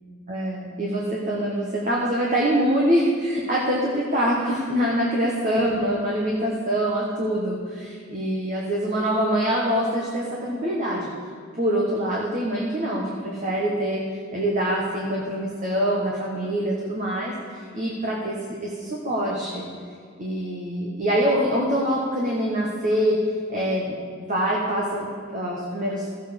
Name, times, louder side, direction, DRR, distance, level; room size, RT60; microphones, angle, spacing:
voice 1, 0.3-11.1 11.5-14.0 14.3-17.3 17.7-19.7 20.2-23.2 23.5-25.0 25.3-26.1, equal, 40° right, -4 dB, 1.5 m, -24 dB
15.0 x 7.5 x 5.3 m, 2.1 s
head